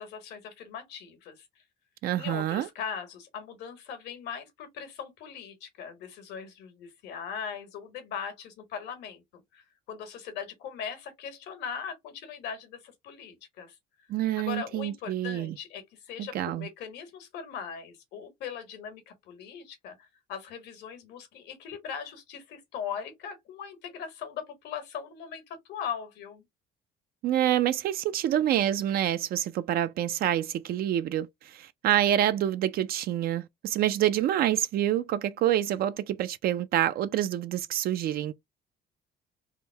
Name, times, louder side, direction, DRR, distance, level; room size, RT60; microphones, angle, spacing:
voice 1, 0.0-1.4 2.1-13.7 14.4-26.4, left 7 dB, 80° left, 1.4 m, -40 dB
voice 2, 2.0-2.7 14.1-15.6 16.2-16.7 27.2-38.3, right 12 dB, 65° right, 0.4 m, -27 dB
3.6 x 2.1 x 4.3 m
cardioid pair, 110°, 17 cm